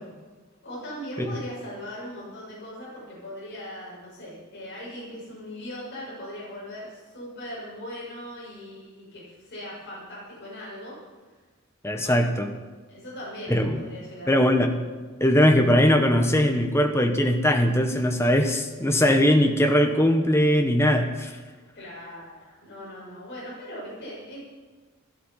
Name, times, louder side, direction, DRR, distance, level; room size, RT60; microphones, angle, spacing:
voice 1, 0.6-11.0 12.0-12.2 12.9-14.6 21.7-24.4, equal, 55° left, -7 dB, 6.6 m, -39 dB
voice 2, 11.8-12.5 13.5-13.8 14.3-14.7 15.2-21.3, equal, 10° left, 4 dB, 1.3 m, -20 dB
17.0 x 13.0 x 5.7 m, 1.4 s
head